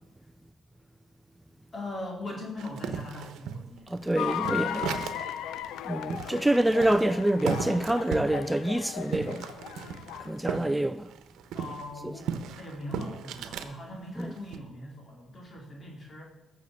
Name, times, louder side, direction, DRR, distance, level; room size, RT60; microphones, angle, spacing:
voice 1, 1.7-4.1 11.5-12.3 12.6-16.2, left 1 dB, 35° left, 4.3 m, -40 dB
sound 1, 2.6-5.4 5.7-5.8 6.1-10.7 11.0-13.7 14.2-14.6, right 8 dB, 85° right, 1.1 m, -36 dB
voice 2, 3.9-5.1 5.8-9.4 10.2-11.1 12.0-12.1 14.2-14.3, right 1 dB, 5° right, 0.5 m, -26 dB
sound 2, 4.2-10.6, left 10 dB, 85° left, 0.7 m, -36 dB
13.5 x 6.7 x 8.6 m
cardioid pair, 90°, 0 cm